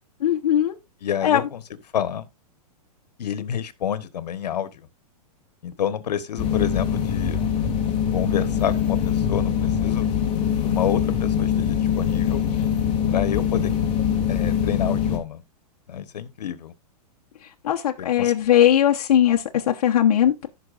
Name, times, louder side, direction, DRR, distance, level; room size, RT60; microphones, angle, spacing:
voice 1, 0.2-0.8 1.2-1.4 17.6-20.5, left 10 dB, 65° left, 1.1 m, -19 dB
voice 2, 1.0-1.6 1.9-2.3 3.2-4.8 5.6-7.4 8.1-10.0 10.6-12.4 13.1-13.7 14.3-15.4 15.9-16.7 18.0-18.3, left 9 dB, 85° left, 1.3 m, -28 dB
sound 1, 6.4-15.2, left 8 dB, 25° left, 2.6 m, -23 dB
15.0 x 5.9 x 2.5 m
hypercardioid pair, 165°, 20 cm